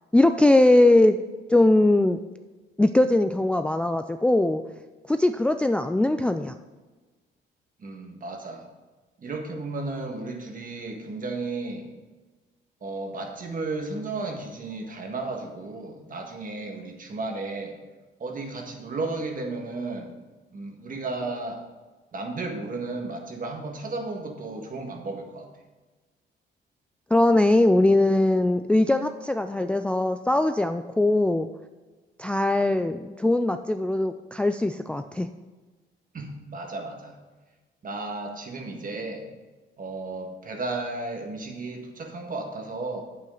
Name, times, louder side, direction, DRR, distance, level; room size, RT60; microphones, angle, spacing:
voice 1, 0.1-1.2 1.5-2.2 2.8-4.6 5.1-6.6 27.1-31.5 32.2-35.3, left 1 dB, 5° left, 8 dB, 0.3 m, -21 dB
voice 2, 7.8-8.7 9.2-11.9 12.8-17.8 18.2-20.1 20.5-21.6 22.1-25.5 36.1-37.2 37.8-39.3 39.8-43.0, right 3 dB, 45° right, 3 dB, 1.7 m, -34 dB
8.4 x 8.4 x 3.9 m, 1.3 s
cardioid pair, 90°, 20 cm